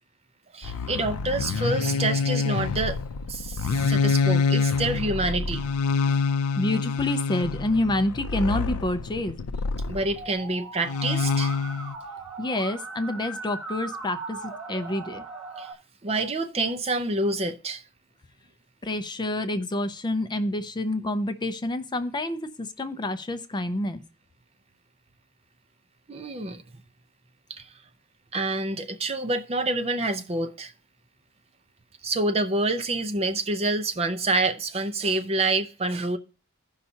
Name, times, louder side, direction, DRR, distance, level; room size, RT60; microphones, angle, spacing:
voice 1, 0.5-3.0 3.3-5.6 9.9-11.5 15.6-15.7 16.0-17.8 26.1-26.6 27.5-27.7 28.3-30.7 32.0-36.2, right 2 dB, 30° right, 0.6 m, -27 dB
sound 1, 0.6-10.2 10.8-11.9, left 5 dB, 85° left, 0.5 m, -26 dB
voice 2, 6.6-9.4 12.4-15.2 18.8-24.0, left 1 dB, 20° left, 0.5 m, -28 dB
Musical instrument, 10.2-15.7, right 3 dB, 5° right, 1.7 m, -38 dB
16.0 x 5.6 x 2.8 m
head